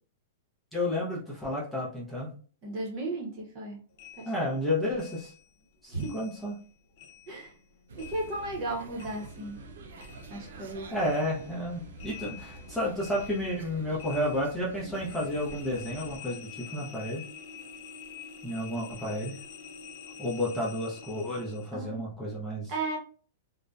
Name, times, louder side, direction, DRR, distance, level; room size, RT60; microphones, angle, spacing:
voice 1, 0.7-2.3 4.3-5.3 5.8-6.5 10.5-17.2 18.4-19.4 20.2-22.7, left 1 dB, 5° left, -7 dB, 0.6 m, -31 dB
voice 2, 2.6-3.8 4.2-4.3 5.9-6.1 7.3-7.5 8.0-9.6 10.3-11.0 21.7-22.0 22.7-23.0, right 2 dB, 35° right, -1 dB, 0.8 m, -35 dB
sound 1, 4.0-6.7 7.0-9.7 10.0-21.8, left 8 dB, 50° left, 0.5 m, -48 dB
sound 2, 7.9-16.2, right 3 dB, 75° right, 0.5 m, -47 dB
2.6 x 2.1 x 2.3 m, 0.42 s
hypercardioid pair, 155°, 0 cm